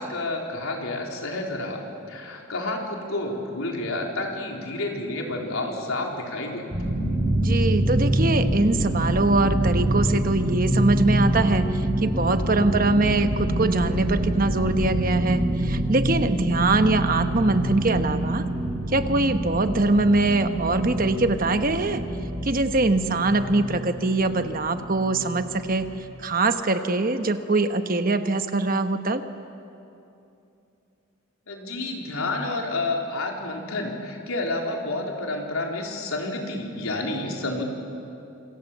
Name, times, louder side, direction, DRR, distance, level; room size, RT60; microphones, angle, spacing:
voice 1, 0.0-1.8 2.1-6.7 31.5-37.7, left 2 dB, 75° left, 0 dB, 3.9 m, -29 dB
sound 1, 6.7-25.9, right 1 dB, 25° right, 7.5 m, -26 dB
voice 2, 7.4-18.4 18.9-22.0 22.4-25.9 26.2-29.2, right 2 dB, 40° right, 8 dB, 1.1 m, -23 dB
27.5 x 26.5 x 7.4 m, 2.8 s
head